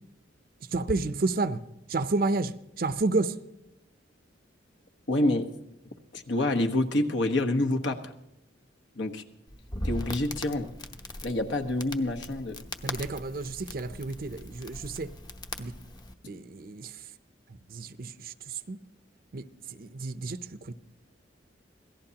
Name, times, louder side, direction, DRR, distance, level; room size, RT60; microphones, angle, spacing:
voice 1, 0.7-1.6 1.9-3.4 12.8-15.1 15.6-15.7 16.3-17.1 17.5-18.8 19.3-20.7, right 3 dB, 50° right, 0.6 m, -31 dB
voice 2, 5.1-5.5 6.1-8.1 9.0-9.2 9.8-10.7 11.2-12.6, left 1 dB, 70° left, 1.3 m, -27 dB
Crackle, 9.5-16.1, left 1 dB, 20° left, 0.8 m, -40 dB
26.0 x 17.5 x 2.9 m
head